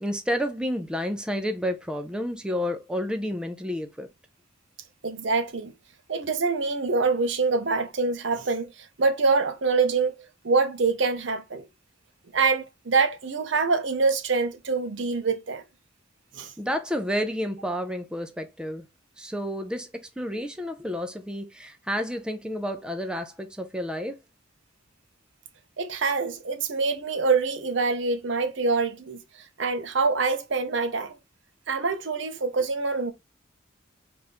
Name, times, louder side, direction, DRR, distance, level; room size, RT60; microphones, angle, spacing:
voice 1, 0.0-4.1 16.6-18.8 19.2-24.2, equal, 5° right, 0.4 m, -30 dB
voice 2, 5.0-5.7 6.1-11.7 12.3-15.6 16.3-16.5 25.8-29.2 29.6-31.2 31.7-33.1, right 4 dB, 70° right, 0.7 m, -25 dB
3.5 x 2.5 x 4.2 m
head